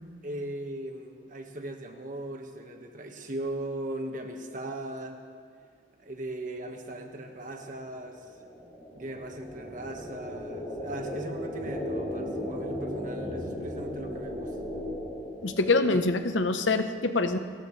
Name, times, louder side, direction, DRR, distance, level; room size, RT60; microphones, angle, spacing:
voice 1, 0.2-5.2 6.0-8.3 8.9-14.6 15.9-16.1, right 1 dB, 45° right, 3 dB, 1.6 m, -38 dB
sound 1, 7.1-16.0, equal, 10° left, 4.9 m, -36 dB
voice 2, 15.4-17.4, left 3 dB, 75° left, 9 dB, 0.9 m, -25 dB
30.0 x 14.5 x 3.3 m, 2.2 s
head